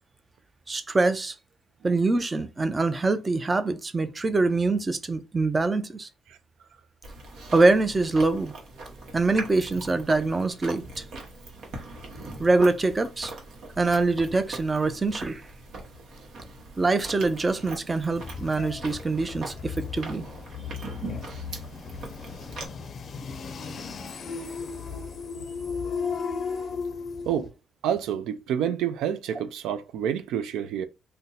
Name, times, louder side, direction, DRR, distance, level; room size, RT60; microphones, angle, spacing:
voice 1, 0.7-1.3 1.8-6.1 7.5-8.5 9.1-11.0 12.4-13.3 13.8-15.4 16.8-20.2, right 3 dB, 25° right, 0.5 m, -24 dB
Chewing mastication, 7.0-22.7, right 2 dB, 70° right, 1.0 m, -41 dB
sound 1, 18.1-27.5, left 5 dB, 55° left, 0.5 m, -35 dB
voice 2, 27.8-30.9, right 9 dB, 85° right, 0.3 m, -28 dB
2.6 x 2.2 x 3.9 m
cardioid pair, 90°, 0 cm